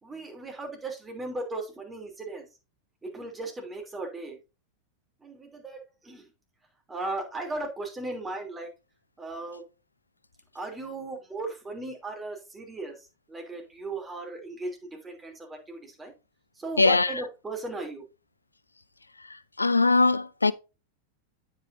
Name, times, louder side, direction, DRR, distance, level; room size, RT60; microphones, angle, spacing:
voice 1, 0.0-2.4 3.0-4.4 5.2-6.3 6.9-8.7 9.2-9.6 10.5-16.1 16.6-18.0, right 2 dB, 15° right, 2.9 m, -37 dB
voice 2, 16.8-17.1 19.6-20.5, left 3 dB, 80° left, 0.4 m, -21 dB
8.8 x 8.1 x 2.6 m
figure-of-eight pair, 90°, 0 cm